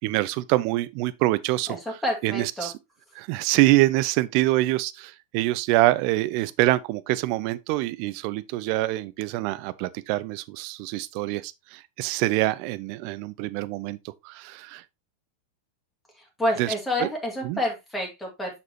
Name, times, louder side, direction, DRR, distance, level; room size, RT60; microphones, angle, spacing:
voice 1, 0.0-2.7 3.1-14.8 16.6-16.7 17.0-17.1 17.4-17.6, right 18 dB, 45° right, 0.4 m, -25 dB
voice 2, 2.0-2.7 16.4-18.6, left 1 dB, 5° left, 2.4 m, -28 dB
6.9 x 6.1 x 2.8 m
figure-of-eight pair, 90°, 0 cm